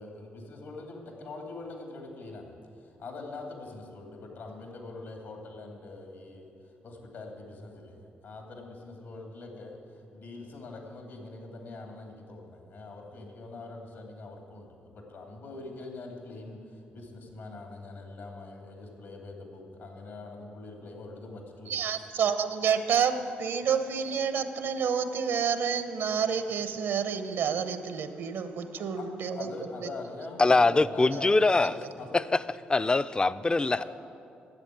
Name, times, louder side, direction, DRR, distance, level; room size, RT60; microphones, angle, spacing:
voice 1, 0.0-21.8 29.0-29.1 29.3-32.2 33.7-33.8, left 3 dB, 75° left, 2.4 m, -43 dB
voice 2, 21.7-29.5 29.8-29.9 31.1-31.3, right 7 dB, 80° right, 0.9 m, -29 dB
voice 3, 30.4-31.7 32.7-33.8, left 3 dB, 25° left, 0.4 m, -23 dB
10.5 x 7.7 x 9.2 m
supercardioid pair, 60°, 4 cm